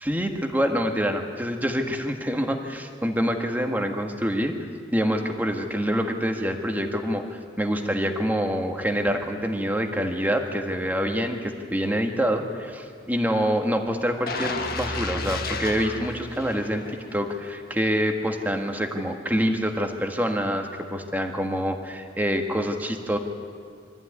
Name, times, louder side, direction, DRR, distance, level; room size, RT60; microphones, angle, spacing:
voice 1, 0.1-4.5 4.9-16.8 17.1-23.2, equal, 10° right, 3 dB, 1.6 m, -26 dB
sound 1, 14.3-17.2 17.6-17.8, left 3 dB, 55° left, 1.6 m, -32 dB
24.0 x 14.5 x 9.6 m, 2.2 s
head